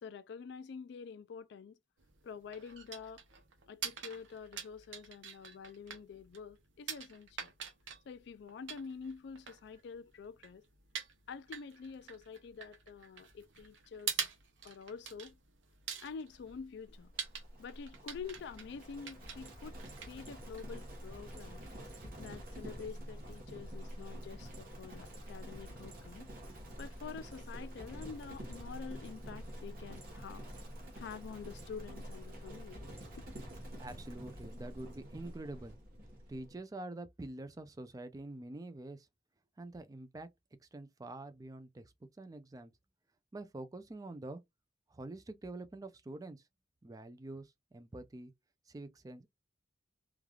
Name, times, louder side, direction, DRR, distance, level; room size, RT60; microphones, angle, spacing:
voice 1, 0.0-1.7 2.2-3.2 3.7-7.5 8.1-10.6 11.3-14.2 14.6-15.4 16.0-17.1 17.6-21.6 22.2-26.3 26.8-30.4 30.9-33.0, left 5 dB, 60° left, 0.3 m, -47 dB
sound 1, 2.0-21.0, right 7 dB, 80° right, 0.7 m, -46 dB
Livestock farm animals working animals, 16.9-36.6, equal, 50° right, 1.0 m, -47 dB
voice 2, 33.8-35.8 36.3-39.1 39.6-40.3 40.6-42.7 43.3-44.4 44.9-46.4 46.8-48.3 48.7-49.3, right 2 dB, 20° right, 0.3 m, -46 dB
3.2 x 2.3 x 2.3 m
head